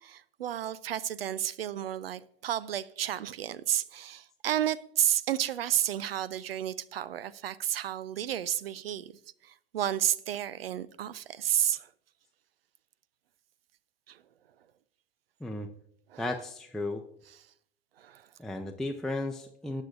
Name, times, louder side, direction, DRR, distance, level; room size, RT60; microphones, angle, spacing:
voice 1, 0.0-9.1 9.4-11.9 14.1-14.2 16.1-16.3 18.0-18.3, right 11 dB, 80° right, 0.5 m, -31 dB
voice 2, 16.2-17.0 18.4-19.8, left 2 dB, ahead, 0.8 m, -34 dB
19.5 x 8.2 x 2.6 m
figure-of-eight pair, 65°, 29 cm